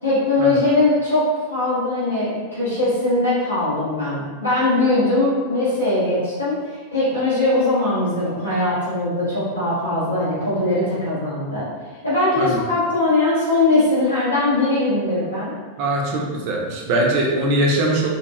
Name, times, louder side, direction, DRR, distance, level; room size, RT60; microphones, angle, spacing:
voice 1, 0.0-11.7 12.0-15.5, left 2 dB, 85° left, -12 dB, 0.9 m, -20 dB
voice 2, 15.8-18.1, right 1 dB, 45° right, -1 dB, 0.6 m, -21 dB
3.0 x 2.8 x 2.2 m, 1.4 s
figure-of-eight pair, 90°, 0 cm